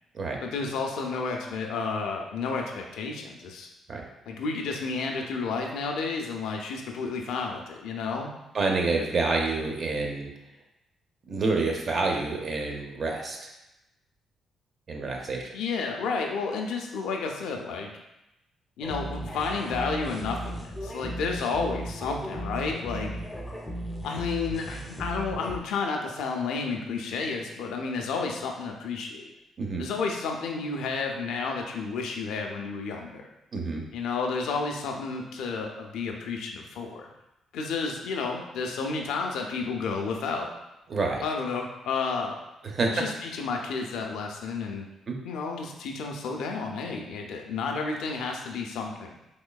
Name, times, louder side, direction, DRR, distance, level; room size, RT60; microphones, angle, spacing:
voice 1, 0.4-3.7 4.3-8.3 15.5-17.9 18.8-23.2 24.0-29.2 29.8-33.3 33.9-37.1 37.5-40.5 41.2-42.4 42.9-44.8 45.2-49.1, left 4 dB, 85° left, 2 dB, 0.5 m, -31 dB
voice 2, 8.5-10.3 11.3-13.5 14.9-15.5 29.6-29.9 33.5-33.8 40.9-41.2 42.6-42.9 45.1-45.2, right 3 dB, 50° right, 1 dB, 0.6 m, -28 dB
sound 1, 18.8-25.6, equal, 15° left, 0.6 m, -36 dB
3.6 x 3.0 x 2.3 m, 0.92 s
cardioid pair, 90°, 0 cm